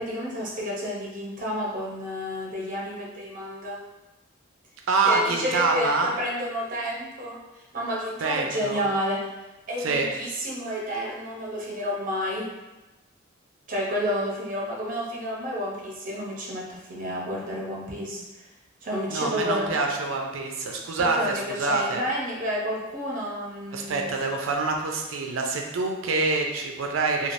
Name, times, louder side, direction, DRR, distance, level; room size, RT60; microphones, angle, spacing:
voice 1, 0.0-3.8 5.0-9.3 9.7-12.5 13.7-18.2 18.8-19.8 21.0-24.1, equal, 45° right, -3 dB, 0.7 m, -30 dB
voice 2, 4.9-6.1 8.2-8.8 9.8-10.1 19.1-22.0 23.7-27.3, right 3 dB, 70° right, 2 dB, 0.4 m, -26 dB
3.2 x 2.3 x 2.5 m, 1.0 s
head